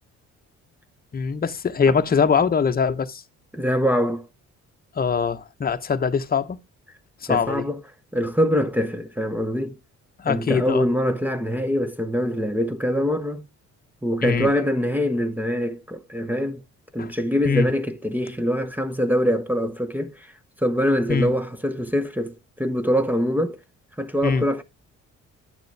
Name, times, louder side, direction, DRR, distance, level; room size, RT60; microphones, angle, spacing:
voice 1, 1.1-3.2 5.0-6.6 7.2-7.6 10.2-10.8 14.2-14.5 17.0-17.1 17.4-17.7 21.1-21.3 24.2-24.4, left 6 dB, 30° left, 0.9 m, -22 dB
voice 2, 3.5-4.3 7.3-7.8 8.1-9.8 10.2-13.4 14.0-16.6 16.9-20.3 20.6-23.6 24.0-24.6, equal, 5° right, 0.8 m, -24 dB
10.0 x 6.7 x 3.3 m
cardioid pair, 90°, 30 cm